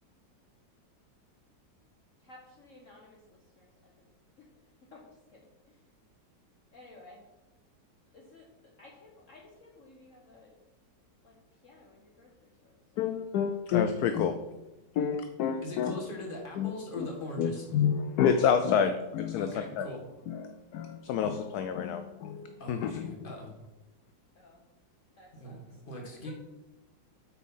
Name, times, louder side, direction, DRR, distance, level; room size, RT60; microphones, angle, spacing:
voice 1, 2.2-4.0 4.4-4.5 4.9-5.1 5.3-5.8 6.7-7.2 8.1-10.5 11.2-11.4 11.6-13.4 24.3-24.6 25.2-25.8 26.1-26.3, left 2 dB, 50° left, -2 dB, 1.3 m, -55 dB
voice 2, 13.0-14.3 14.9-15.9 16.6-16.7 17.0-17.1 17.4-19.9 20.3-23.1, left 7 dB, 70° left, 8 dB, 1.0 m, -29 dB
voice 3, 15.6-17.6 19.3-20.0 22.6-23.5 25.3-26.3, equal, 30° left, 0 dB, 1.8 m, -41 dB
8.3 x 4.6 x 5.5 m, 1.0 s
omnidirectional pair, 2.0 m